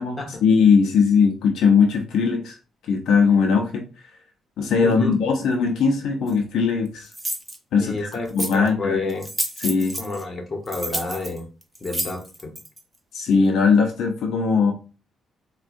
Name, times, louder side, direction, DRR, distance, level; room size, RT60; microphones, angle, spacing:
voice 1, 0.0-2.6 2.9-3.8 4.6-7.1 7.7-8.1 8.3-9.1 9.6-9.9 13.1-14.7, left 5 dB, 75° left, 2 dB, 0.6 m, -19 dB
voice 2, 4.8-5.2 7.8-9.3 10.0-11.4 11.8-12.5, left 3 dB, 35° left, 3 dB, 1.1 m, -29 dB
sound 1, 6.3-6.4 7.1-7.6 8.1-8.7 9.1-10.2 10.7-12.8, right 1 dB, 10° right, 0.8 m, -30 dB
4.4 x 2.2 x 2.5 m, 0.34 s
cardioid pair, 90°, 0 cm